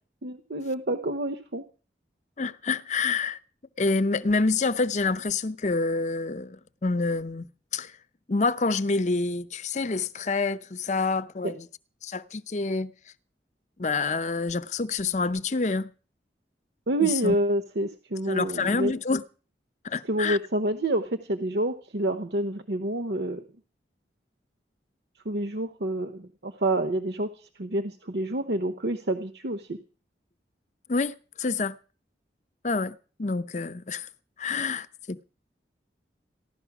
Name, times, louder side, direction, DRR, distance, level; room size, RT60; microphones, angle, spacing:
voice 1, 0.2-1.6 11.4-11.5 16.9-18.9 20.0-23.4 25.2-29.8, right 1 dB, 70° right, 1.0 m, -28 dB
voice 2, 2.4-3.4 3.8-7.4 7.7-7.9 8.3-11.7 12.0-12.9 13.8-15.9 17.0-17.4 18.3-19.2 19.8-20.4 30.9-31.8 32.6-34.1 34.4-35.2, left 3 dB, 40° left, 0.6 m, -27 dB
15.0 x 12.0 x 6.0 m
head